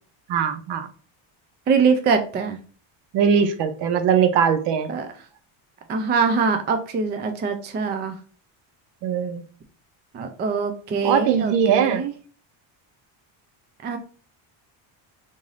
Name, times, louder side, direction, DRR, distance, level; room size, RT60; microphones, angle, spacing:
voice 1, 0.3-0.9 3.1-4.9 9.0-9.4 11.0-12.0, right 7 dB, 60° right, 10 dB, 0.7 m, -20 dB
voice 2, 1.7-2.6 4.9-5.1 5.9-8.2 10.1-12.1 13.8-14.0, right 5 dB, 25° right, 7 dB, 0.3 m, -23 dB
3.7 x 2.6 x 3.2 m, 0.40 s
cardioid pair, 130°, 49 cm